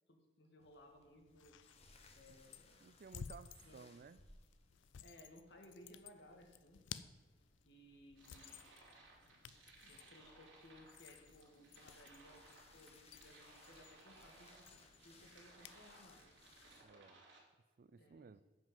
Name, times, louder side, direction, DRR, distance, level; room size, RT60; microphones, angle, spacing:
voice 1, 0.1-1.6 2.1-2.9 3.6-3.8 5.0-6.8 7.6-8.7 9.8-14.8 15.0-16.3 17.9-18.3, equal, 65° left, 3 dB, 1.7 m, -62 dB
sound 1, 0.6-16.8, left 3 dB, 35° left, 1.1 m, -68 dB
sound 2, 1.3-15.8, left 7 dB, 80° left, 0.4 m, -57 dB
voice 2, 2.8-4.2 16.8-17.2 17.8-18.4, right 5 dB, 50° right, 15 dB, 0.4 m, -57 dB
sound 3, 8.1-17.4, right 2 dB, 90° right, 3.0 m, -63 dB
9.2 x 5.2 x 7.3 m, 1.2 s
head